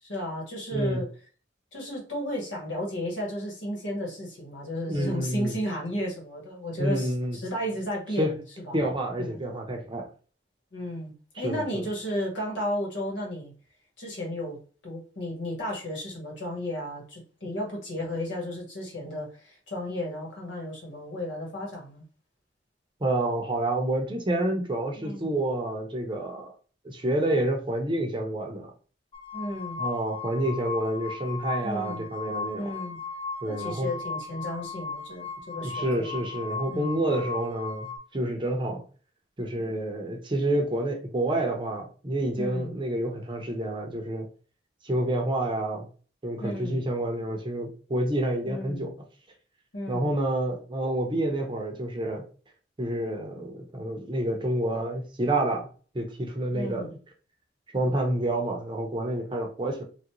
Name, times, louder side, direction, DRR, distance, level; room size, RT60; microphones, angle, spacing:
voice 1, 0.0-1.1 1.7-8.4 8.7-8.8 9.2-9.4 10.7-13.5 14.0-14.6 14.8-22.0 25.0-25.4 29.3-29.8 31.6-32.1 32.5-33.0 33.5-36.1 36.7-36.9 42.4-42.7 46.4-46.8 48.4-48.9 49.7-50.1 56.5-56.9, left 1 dB, 85° left, 1.6 m, -33 dB
voice 2, 0.7-1.0 4.8-5.5 6.8-7.4 8.2-8.3 8.7-10.1 11.4-11.8 23.0-26.5 26.8-28.7 29.8-32.7 33.4-33.9 35.6-38.8 39.4-44.3 44.8-45.9 46.2-48.9 49.9-52.2 52.8-55.7 55.9-56.9 57.7-59.8, right 1 dB, 25° right, 0.6 m, -28 dB
sound 1, 29.1-38.0, left 4 dB, 30° left, 0.5 m, -36 dB
3.1 x 2.5 x 2.9 m
head